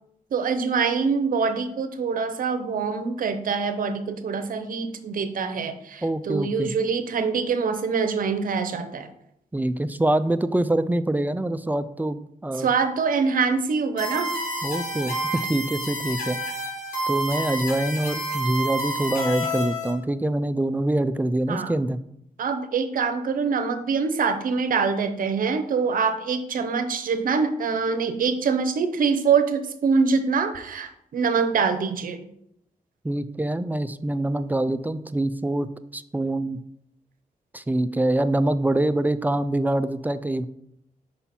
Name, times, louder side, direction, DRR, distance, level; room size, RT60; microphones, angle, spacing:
voice 1, 0.3-9.1 12.6-14.3 21.5-21.7 22.4-32.2, right 5 dB, 70° right, 10 dB, 0.7 m, -24 dB
voice 2, 6.0-6.7 9.5-12.7 14.6-16.4 17.1-22.0 33.0-35.7 35.9-36.6 37.5-40.4, right 1 dB, 10° right, 12 dB, 0.3 m, -25 dB
sound 1, 14.0-19.9, equal, 85° left, 2.2 m, -29 dB
5.7 x 5.4 x 4.3 m, 0.76 s
cardioid pair, 95°, 15 cm